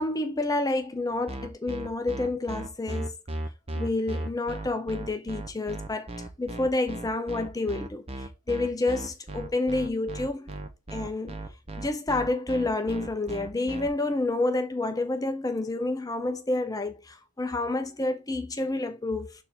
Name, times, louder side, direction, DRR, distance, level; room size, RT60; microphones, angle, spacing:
voice 1, 0.0-3.1 3.8-6.1 6.4-10.5 10.9-11.4 11.8-19.3, left 2 dB, 15° left, 0.7 m, -29 dB
sound 1, 1.3-13.9, right 1 dB, 30° right, 0.9 m, -36 dB
6.6 x 3.5 x 4.4 m
head